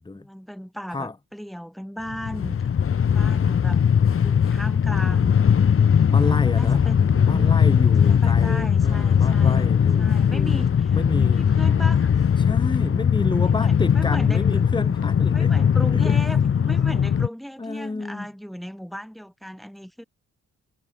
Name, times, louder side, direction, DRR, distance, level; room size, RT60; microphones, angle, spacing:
voice 1, 0.1-2.6 3.1-3.8 4.2-5.4 6.2-7.5 8.0-12.1 13.4-14.6 15.3-20.0, equal, ahead, 5.2 m, -36 dB
Train, 2.1-17.3, left 7 dB, 50° left, 1.5 m, -19 dB
voice 2, 6.1-6.8 7.3-11.5 12.4-15.5 15.9-16.3 17.6-18.3, left 3 dB, 15° left, 1.4 m, -30 dB
cardioid pair, 105°, 29 cm